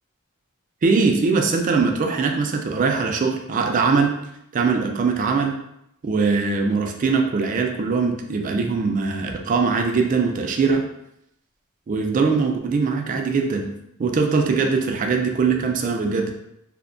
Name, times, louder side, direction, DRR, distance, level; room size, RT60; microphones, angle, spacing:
voice 1, 0.8-4.2 4.5-5.6 6.0-10.8 11.9-13.6 14.0-16.3, right 4 dB, 40° right, 3 dB, 0.3 m, -21 dB
2.6 x 2.1 x 2.5 m, 0.80 s
head